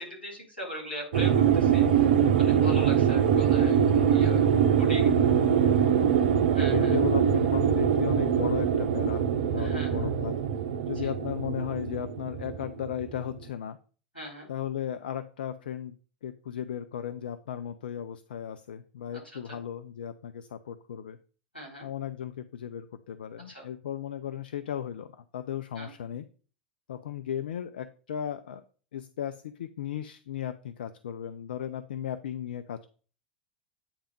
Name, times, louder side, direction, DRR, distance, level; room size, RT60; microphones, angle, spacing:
voice 1, 0.0-4.5 4.8-5.1 6.5-7.0 9.6-10.1 10.9-11.1 14.1-14.5 19.1-19.2 19.5-19.6 21.5-21.9 23.5-23.6 25.8-25.9, equal, 85° left, -2 dB, 3.7 m, -40 dB
sound 1, 1.1-13.4, right 8 dB, 60° right, 0.6 m, -23 dB
voice 2, 4.1-6.1 6.7-10.4 10.8-13.8 14.5-16.0 16.2-21.2 21.8-26.2 26.9-28.6 28.9-32.9, left 10 dB, 65° left, 11 dB, 0.4 m, -36 dB
8.7 x 3.4 x 5.2 m, 0.40 s
figure-of-eight pair, 85°, 5 cm